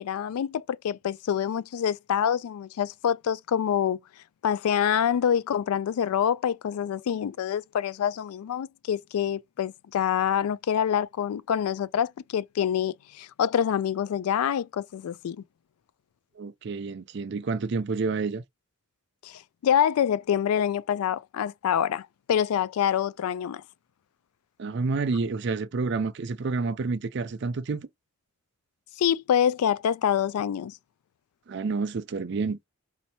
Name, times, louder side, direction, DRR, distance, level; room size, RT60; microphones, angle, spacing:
voice 1, 0.0-4.0 4.4-15.4 19.2-23.6 29.0-30.8, left 9 dB, 85° left, 0.3 m, -26 dB
voice 2, 16.4-18.4 24.6-27.9 31.5-32.6, right 4 dB, 55° right, 0.4 m, -29 dB
4.2 x 2.8 x 2.7 m
head